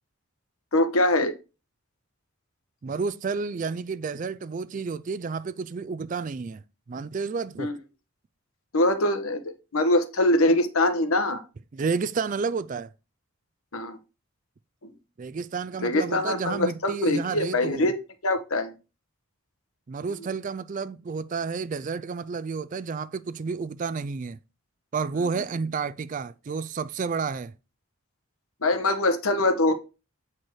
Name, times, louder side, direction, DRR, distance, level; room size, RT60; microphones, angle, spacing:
voice 1, 0.7-1.3 7.6-7.8 8.7-11.4 13.7-14.0 14.8-14.9 15.8-17.9 18.2-18.7 25.2-25.3 28.6-29.7, left 1 dB, 85° left, 1.1 m, -23 dB
voice 2, 2.8-7.7 11.7-12.9 15.2-17.9 19.9-24.4 24.9-27.5, right 5 dB, 40° right, 0.3 m, -31 dB
7.7 x 4.4 x 4.7 m
head